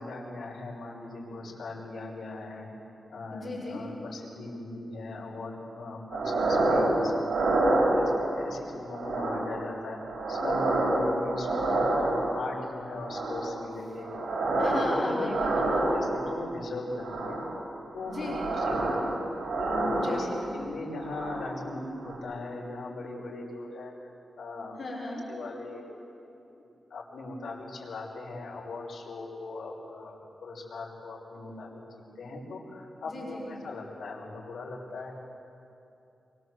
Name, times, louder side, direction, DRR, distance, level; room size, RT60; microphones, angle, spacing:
voice 1, 0.0-2.7 3.1-7.3 7.5-14.1 14.5-15.4 15.9-17.4 17.9-19.2 19.5-24.1 24.3-24.8 25.1-25.8 26.6-35.1, left 2 dB, 70° left, -3 dB, 6.0 m, -39 dB
voice 2, 3.3-3.8 14.6-15.9 18.0-18.4 19.9-20.5 24.8-25.2 33.0-33.4, left 2 dB, 40° left, -4 dB, 6.0 m, -36 dB
sound 1, 6.1-7.0 7.2-8.4 8.9-9.6 9.9-12.5 12.9-13.6 14.0-14.9 15.3-16.3 17.0-17.5 18.0-20.5 20.9-21.5 22.0-22.2, right 2 dB, 85° right, 7.3 m, -28 dB
25.0 x 24.5 x 8.0 m, 2.8 s
wide cardioid pair, 150°, 0 cm